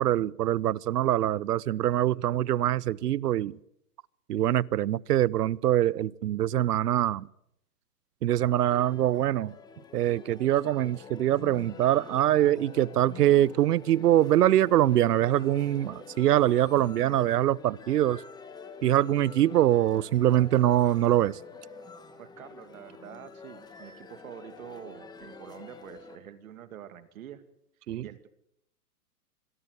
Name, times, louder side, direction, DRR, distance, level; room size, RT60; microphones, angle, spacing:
voice 1, 0.0-3.6 4.3-7.3 8.2-9.5 9.9-18.2 18.8-21.4 27.9-28.1, right 13 dB, 75° right, 0.8 m, -24 dB
sound 1, 8.5-26.2, left 4 dB, 10° left, 1.5 m, -47 dB
voice 2, 22.2-27.4 28.0-28.3, right 10 dB, 60° right, 2.4 m, -46 dB
25.5 x 17.5 x 8.1 m
hypercardioid pair, 155°, 48 cm